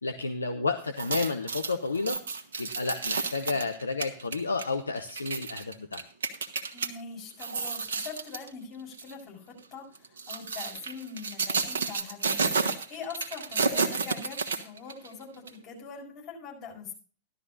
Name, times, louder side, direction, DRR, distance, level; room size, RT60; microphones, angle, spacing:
voice 1, 0.0-2.2 2.6-6.0, left 3 dB, 75° left, 6 dB, 0.8 m, -31 dB
sound 1, 0.9-6.9 7.3-8.5 8.9-9.1 9.9-15.1 15.5-15.6, right 4 dB, 70° right, 1.2 m, -31 dB
voice 2, 6.7-16.9, left 5 dB, 40° left, -1 dB, 6.5 m, -43 dB
15.0 x 12.0 x 2.6 m, 0.39 s
figure-of-eight pair, 90°, 0 cm